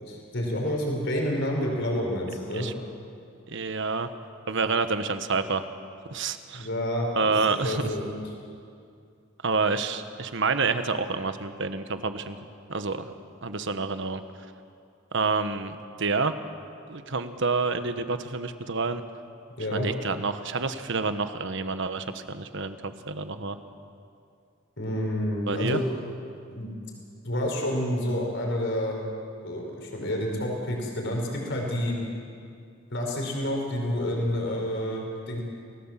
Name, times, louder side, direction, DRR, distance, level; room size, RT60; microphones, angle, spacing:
voice 1, 0.0-2.7 6.5-7.3 7.6-8.2 19.6-19.9 24.8-25.8 26.5-26.7 27.2-29.0 29.4-31.9 32.9-35.4, left 1 dB, 60° left, 0 dB, 4.9 m, -29 dB
voice 2, 3.5-4.1 4.5-5.6 6.1-6.7 7.2-7.9 9.4-12.4 12.7-13.1 13.4-14.2 15.1-16.3 16.9-19.0 19.7-23.6 25.5-25.8, right 4 dB, 60° right, 9 dB, 1.3 m, -28 dB
28.5 x 18.0 x 7.5 m, 2.4 s
head